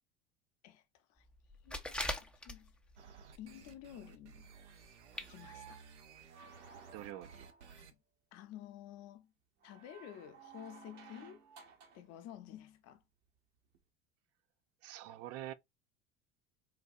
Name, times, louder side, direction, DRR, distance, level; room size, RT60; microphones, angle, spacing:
voice 1, 0.6-1.3 1.6-2.7 3.4-4.5 5.2-5.8 7.8-8.0 8.3-9.3 9.6-11.4 11.9-13.0, left 11 dB, 50° left, 0.8 m, -52 dB
sound 1, 1.5-2.9 3.3-3.8 4.1-4.2 4.8-4.9 5.1-5.3 5.7-5.8 6.2-6.3, left 1 dB, 5° left, 0.5 m, -40 dB
sound 2, 3.0-7.9, right 6 dB, 85° right, 0.7 m, -56 dB
sound 3, 5.3-7.8 9.6-12.1 13.7-13.8, right 6 dB, 60° right, 1.1 m, -57 dB
voice 2, 6.9-7.5 14.8-15.5, right 13 dB, 45° right, 0.5 m, -45 dB
4.0 x 2.3 x 2.6 m
hypercardioid pair, 70°, 34 cm